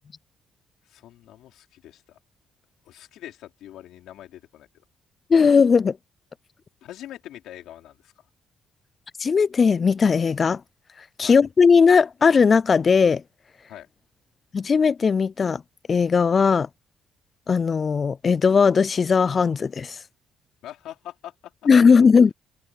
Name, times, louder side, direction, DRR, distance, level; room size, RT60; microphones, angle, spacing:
voice 1, 0.8-2.2 2.8-4.7 6.8-8.3 11.2-11.4 13.7-13.9 20.6-21.7, left 12 dB, 85° left, 4.0 m, -43 dB
voice 2, 5.3-6.0 9.2-10.6 11.2-13.2 14.5-15.6 15.9-16.7 17.5-20.0 21.7-22.3, left 5 dB, 40° left, 0.3 m, -18 dB
open air
cardioid pair, 90°, 0 cm